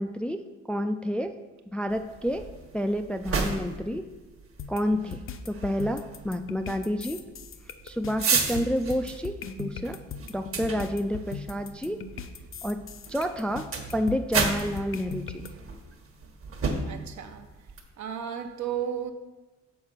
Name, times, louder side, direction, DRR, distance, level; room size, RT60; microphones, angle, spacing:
voice 1, 0.0-1.4 1.7-2.5 2.7-4.1 4.7-7.2 7.8-10.0 10.3-12.0 12.6-15.4, equal, 5° left, 7 dB, 0.3 m, -29 dB
sound 1, 1.9-17.8, right 4 dB, 45° right, 1.2 m, -34 dB
sound 2, 4.6-15.5, left 6 dB, 45° left, 0.6 m, -39 dB
voice 2, 16.8-17.4 18.0-19.1, right 9 dB, 70° right, 6 dB, 0.9 m, -33 dB
6.7 x 4.3 x 5.6 m, 1.2 s
cardioid pair, 90°, 30 cm